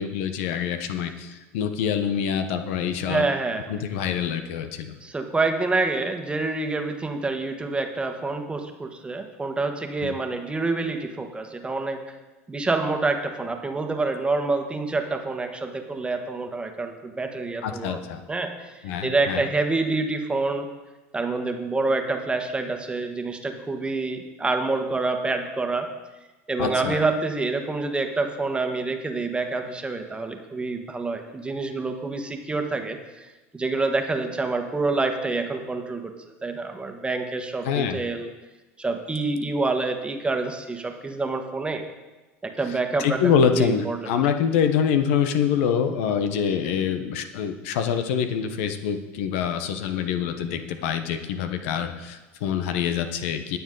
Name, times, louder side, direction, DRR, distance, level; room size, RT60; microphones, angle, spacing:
voice 1, 0.0-3.3 3.7-4.9 10.0-10.1 17.6-18.2 18.8-19.4 26.6-27.0 37.6-38.0 43.0-53.6, left 7 dB, 70° left, 8 dB, 1.0 m, -25 dB
voice 2, 3.1-3.6 5.0-12.0 12.5-18.0 18.3-18.7 19.0-20.7 21.1-25.9 26.5-33.3 33.5-36.1 36.4-38.3 38.8-41.8 42.4-44.2, right 3 dB, 15° right, 4 dB, 1.5 m, -27 dB
20.0 x 7.0 x 3.9 m, 1.1 s
hypercardioid pair, 90°, 7 cm